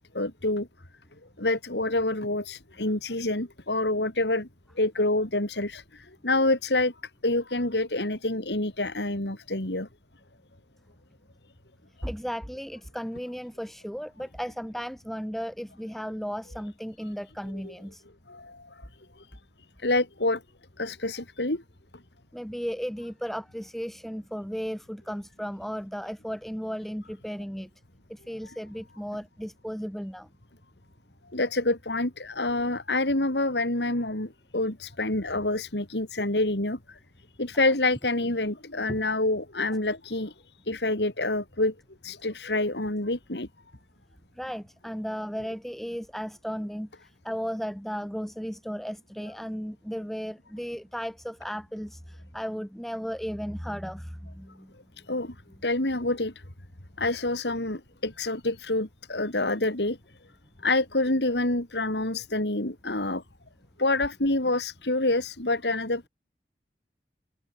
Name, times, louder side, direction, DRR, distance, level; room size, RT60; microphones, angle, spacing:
voice 1, 0.1-0.7 1.4-4.5 4.8-6.9 7.2-9.9 18.3-18.6 19.2-19.3 19.8-20.4 20.8-21.6 31.3-37.0 37.4-40.3 40.7-41.7 42.0-43.5 55.1-55.3 55.6-56.3 57.0-60.0 60.6-63.2 63.8-66.1, left 2 dB, 80° left, 3.4 m, -27 dB
voice 2, 12.0-18.0 22.3-27.7 28.1-30.3 37.5-37.6 38.9-39.0 44.4-54.7, equal, ahead, 6.5 m, -35 dB
head